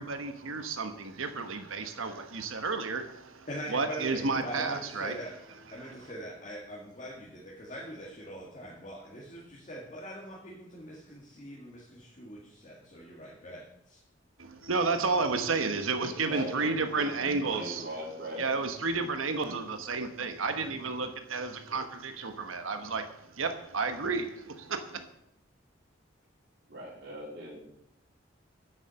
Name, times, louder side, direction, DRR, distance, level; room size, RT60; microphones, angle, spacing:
voice 1, 0.0-5.2 5.7-6.1 14.4-17.8 18.4-25.1, right 4 dB, 85° right, 1.2 m, -32 dB
voice 2, 3.5-5.3 5.7-14.0, equal, 35° left, 1.9 m, -43 dB
voice 3, 16.0-16.7 17.0-18.4 19.4-19.6 26.7-27.8, equal, 55° right, 3.8 m, -40 dB
8.9 x 7.2 x 6.9 m
head